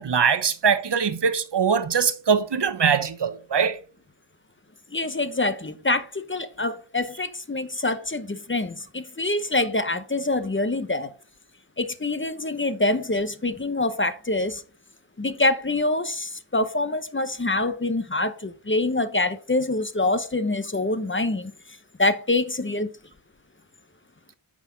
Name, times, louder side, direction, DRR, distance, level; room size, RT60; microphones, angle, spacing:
voice 1, 0.0-3.8, right 6 dB, 55° right, 0.9 m, -22 dB
voice 2, 4.9-11.1 11.8-14.6 15.2-21.5 22.0-22.9, left 2 dB, 25° left, 0.9 m, -25 dB
9.6 x 6.2 x 4.0 m
wide cardioid pair, 80°, 49 cm